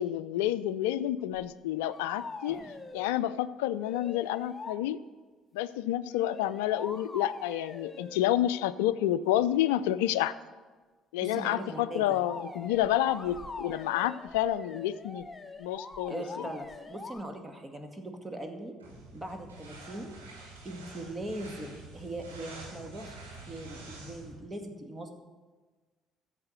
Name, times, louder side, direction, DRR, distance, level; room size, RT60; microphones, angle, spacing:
voice 1, 0.0-2.7 2.9-5.0 5.5-10.4 11.1-15.3 15.6-16.2, left 12 dB, 70° left, 16 dB, 0.4 m, -29 dB
sound 1, 1.3-1.5 1.9-3.1 3.8-4.8 6.1-8.2 12.1-17.2, left 3 dB, 20° left, 0.9 m, -44 dB
voice 2, 2.5-2.9 11.2-12.2 16.1-18.7 19.1-20.1 20.6-23.2 23.5-25.1, right 1 dB, 20° right, 4 dB, 2.0 m, -40 dB
sound 2, 18.8-24.4, right 2 dB, 85° right, 2.7 m, -47 dB
14.0 x 7.5 x 6.4 m, 1.4 s
figure-of-eight pair, 50°, 0 cm